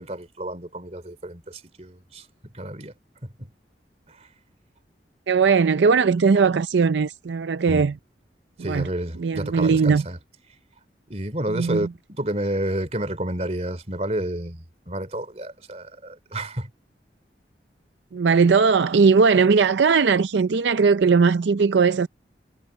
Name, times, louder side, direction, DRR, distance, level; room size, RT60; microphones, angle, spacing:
voice 1, 0.0-2.3 2.5-2.9 3.4-3.5 4.1-4.3 7.7-7.9 8.6-10.2 11.1-16.7, right 1 dB, 35° right, 3.3 m, -30 dB
voice 2, 5.3-7.9 8.6-8.9 9.2-10.0 11.5-11.9 18.1-22.1, right 5 dB, 80° right, 0.5 m, -19 dB
head